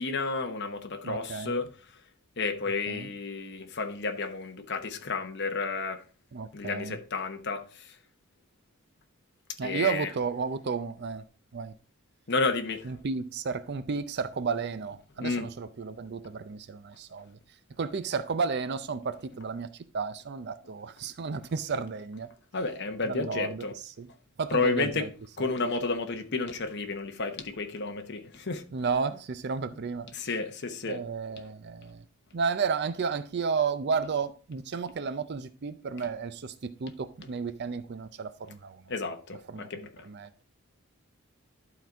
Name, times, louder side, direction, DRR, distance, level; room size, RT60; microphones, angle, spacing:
voice 1, 0.0-1.7 2.4-6.0 6.5-8.0 9.6-10.1 12.3-12.9 15.2-15.5 22.5-23.7 24.5-25.1 25.4-28.6 30.1-31.0 38.9-39.9, left 3 dB, 50° left, 1.0 m, -31 dB
voice 2, 1.0-1.5 2.9-3.1 6.3-7.0 9.6-11.3 11.5-11.8 12.8-17.4 17.8-22.3 23.0-23.7 24.0-24.1 24.4-25.1 28.7-30.1 30.9-32.1 32.3-38.8 39.5-40.4, right 5 dB, 50° right, 0.5 m, -32 dB
11.5 x 3.9 x 4.5 m
head